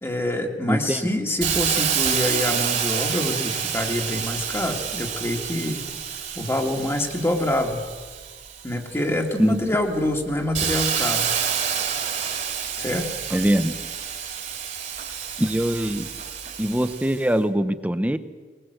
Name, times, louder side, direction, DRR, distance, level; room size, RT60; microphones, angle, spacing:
voice 1, 0.0-5.9 6.4-7.8 8.6-11.3 12.8-13.1, left 1 dB, 15° left, 1 dB, 1.9 m, -26 dB
voice 2, 0.7-1.0 9.4-9.6 13.3-13.9 15.4-16.1 16.6-18.2, equal, 10° right, 12 dB, 0.8 m, -22 dB
Hiss, 1.4-9.0 9.5-17.2, right 8 dB, 40° right, 2.7 m, -28 dB
21.0 x 21.0 x 8.0 m, 1.4 s
head